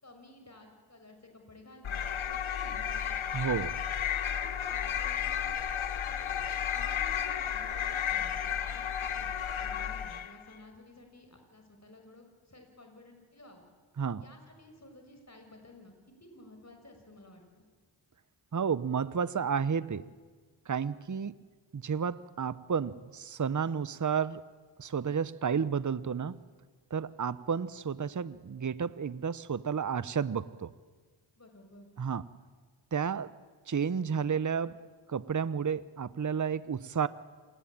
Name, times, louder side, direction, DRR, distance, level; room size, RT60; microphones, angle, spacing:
voice 1, 0.0-3.2 4.0-5.5 6.0-13.6 14.2-17.6 31.4-31.9, left 1 dB, 35° left, 4 dB, 6.4 m, -54 dB
sound 1, 1.8-10.4, left 9 dB, 75° left, 1.3 m, -33 dB
voice 2, 3.3-3.7 14.0-14.2 18.5-20.0 20.7-21.4 21.7-24.4 24.8-26.4 26.9-30.7 32.0-32.2 32.9-33.3 33.7-34.8 35.1-37.1, right 6 dB, 40° right, 17 dB, 1.0 m, -31 dB
28.0 x 21.0 x 8.9 m, 1.5 s
cardioid pair, 40°, 48 cm